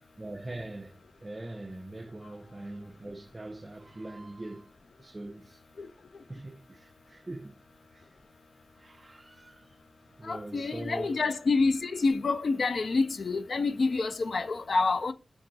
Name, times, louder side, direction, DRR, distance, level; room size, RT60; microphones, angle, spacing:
voice 1, 0.2-4.7 5.0-5.6 6.3-7.5 7.9-8.1 8.8-9.7 10.2-11.2, right 2 dB, 30° right, 0.3 m, -42 dB
voice 2, 10.2-15.1, left 3 dB, 75° left, 0.3 m, -27 dB
3.7 x 2.3 x 2.6 m
wide cardioid pair, 100°, 0 cm